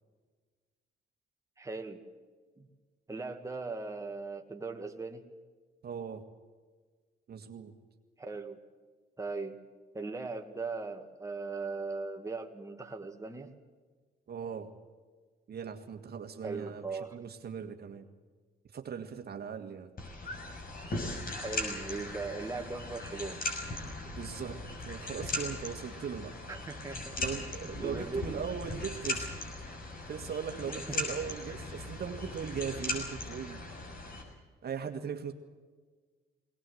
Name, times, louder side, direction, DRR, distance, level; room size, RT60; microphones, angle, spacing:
voice 1, 1.6-2.0 2.6-2.7 3.1-5.2 8.2-8.6 9.2-9.6 9.9-13.5 16.4-17.2 21.3-23.4 26.5-27.2 27.8-28.5 30.7-31.0, right 3 dB, 15° right, 3 dB, 2.1 m, -39 dB
voice 2, 5.8-6.2 7.3-7.7 14.3-14.7 15.5-18.1 18.7-19.9 24.1-26.3 27.2-29.3 30.1-33.6 34.6-35.3, right 7 dB, 55° right, 5 dB, 1.9 m, -39 dB
sound 1, 20.0-34.2, left 2 dB, 45° left, 6.5 m, -39 dB
20.5 x 19.5 x 7.9 m, 1.5 s
cardioid pair, 90°, 20 cm